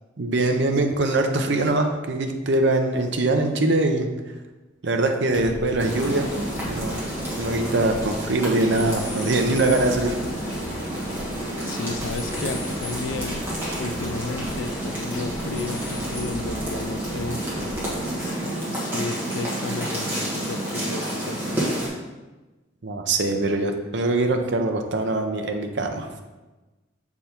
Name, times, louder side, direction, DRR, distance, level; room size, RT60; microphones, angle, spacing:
voice 1, 0.2-4.1 4.8-6.3 6.6-7.0 7.4-10.2 22.8-26.1, right 2 dB, 65° right, 4 dB, 0.6 m, -23 dB
sound 1, 3.4-3.5 5.3-5.6 5.8-8.3 8.7-20.5, left 2 dB, 45° left, 2.0 m, -44 dB
sound 2, 5.3-18.4, equal, 85° left, 0.8 m, -39 dB
sound 3, 5.8-21.9, right 1 dB, 10° right, 1.4 m, -29 dB
voice 2, 11.6-13.4 13.8-17.4 18.2-18.4 18.7-21.6, left 3 dB, 70° left, 10 dB, 0.4 m, -33 dB
6.5 x 3.5 x 4.4 m, 1.2 s
head